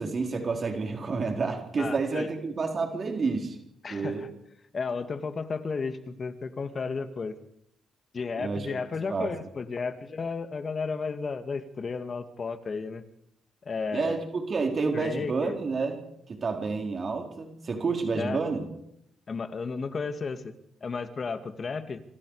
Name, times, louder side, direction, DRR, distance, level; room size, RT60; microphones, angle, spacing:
voice 1, 0.0-3.6 3.9-4.2 8.4-8.7 9.1-9.3 13.9-16.0 16.3-18.7, right 4 dB, 40° right, 3 dB, 4.6 m, -29 dB
voice 2, 1.8-2.3 3.8-4.3 4.7-7.4 8.1-13.0 13.6-14.2 14.9-15.6 18.2-18.4 19.3-20.5 20.8-22.0, left 4 dB, 40° left, 9 dB, 2.3 m, -33 dB
27.0 x 26.0 x 5.1 m, 0.79 s
cardioid pair, 90°, 0 cm